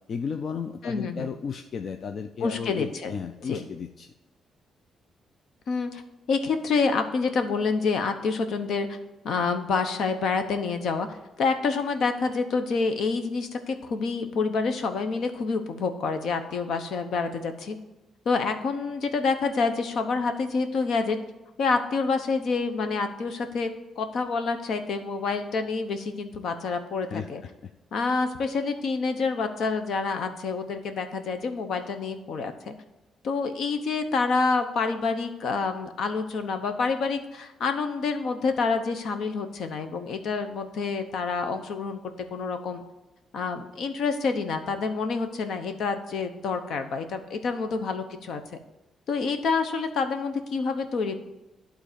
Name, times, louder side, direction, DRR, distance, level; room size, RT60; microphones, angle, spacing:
voice 1, 0.1-4.1 27.1-27.3 27.6-27.7, left 6 dB, 45° left, 8 dB, 0.4 m, -34 dB
voice 2, 0.8-1.3 2.4-3.1 3.5-3.7 5.7-6.0 6.3-9.0 9.2-17.8 18.2-21.2 21.6-23.7 24.0-27.4 27.9-32.7 33.2-42.8 43.3-48.4 49.1-51.2, left 4 dB, 65° left, 8 dB, 0.9 m, -27 dB
11.5 x 3.9 x 6.9 m, 1.0 s
cardioid pair, 135°, 0 cm